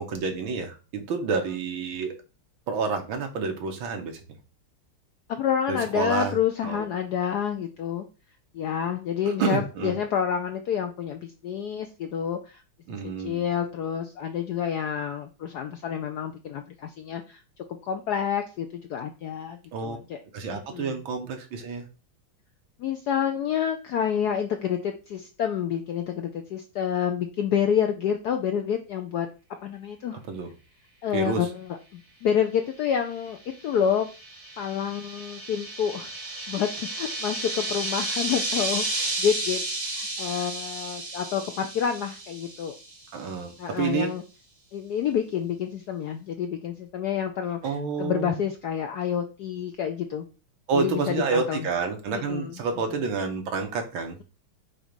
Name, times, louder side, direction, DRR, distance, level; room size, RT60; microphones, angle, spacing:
voice 1, 0.0-2.1 2.7-4.2 5.7-6.3 6.6-6.8 9.2-9.9 12.9-13.4 19.7-20.0 20.3-21.9 30.3-30.5 31.1-31.5 43.1-44.1 47.6-48.4 50.7-54.2, right 5 dB, 70° right, 4 dB, 1.9 m, -29 dB
voice 2, 5.3-8.1 8.5-12.6 13.2-17.4 17.9-20.2 20.5-21.0 22.8-29.3 29.6-30.2 31.0-33.4 33.6-34.1 34.6-36.1 36.5-42.7 43.6-44.2 44.7-50.2 50.7-51.7 52.1-52.5 52.9-53.0, left 8 dB, 75° left, 6 dB, 0.9 m, -28 dB
sound 1, 33.3-43.1, right 2 dB, 45° right, 3.1 m, -32 dB
6.2 x 3.0 x 5.1 m, 0.33 s
omnidirectional pair, 2.3 m